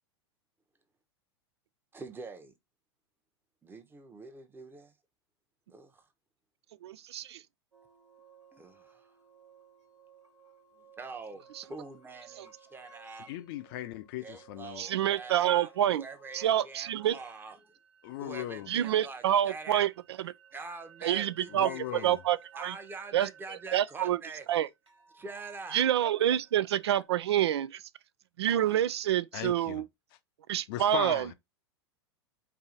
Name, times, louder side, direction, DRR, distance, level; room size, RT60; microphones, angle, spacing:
voice 1, 1.9-2.5 3.6-4.9 5.7-6.1 8.5-9.1 11.0-13.3 14.2-17.8 18.2-19.9 20.5-22.1 22.6-24.7 25.1-25.8, right 4 dB, 15° right, 0.9 m, -45 dB
voice 2, 6.8-7.4 11.6-11.7 14.8-16.0 16.3-17.2 18.7-19.9 20.2-20.3 21.0-21.7 22.0-22.7 23.1-23.3 23.7-24.2 24.5-24.7 25.7-27.8 28.4-29.9 30.5-31.3, right 11 dB, 70° right, 0.4 m, -27 dB
sound 1, 7.7-27.1, right 5 dB, 85° right, 1.3 m, -58 dB
voice 3, 13.3-14.9 18.0-18.7 21.5-22.2 29.3-29.8 30.7-31.3, left 14 dB, 50° left, 0.6 m, -38 dB
4.7 x 2.7 x 3.9 m
figure-of-eight pair, 95°, 15 cm